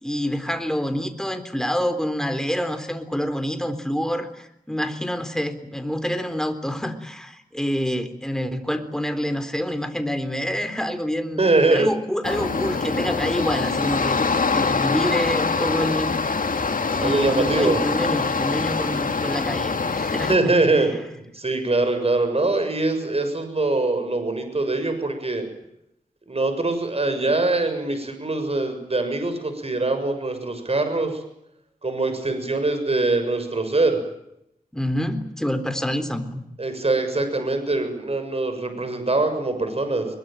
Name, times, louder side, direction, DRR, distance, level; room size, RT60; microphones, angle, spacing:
voice 1, 0.0-11.4 11.7-14.2 14.5-16.2 17.0-20.5 20.9-21.0 34.7-36.4, equal, 5° left, 9 dB, 3.8 m, -27 dB
voice 2, 11.4-11.9 17.0-17.8 20.3-25.4 26.3-31.2 31.8-34.0 36.6-40.1, right 2 dB, 45° right, 7 dB, 6.9 m, -23 dB
sound 1, 12.2-20.4, left 4 dB, 65° left, 2.1 m, -24 dB
22.5 x 22.0 x 9.1 m, 0.80 s
wide cardioid pair, 60°, 15 cm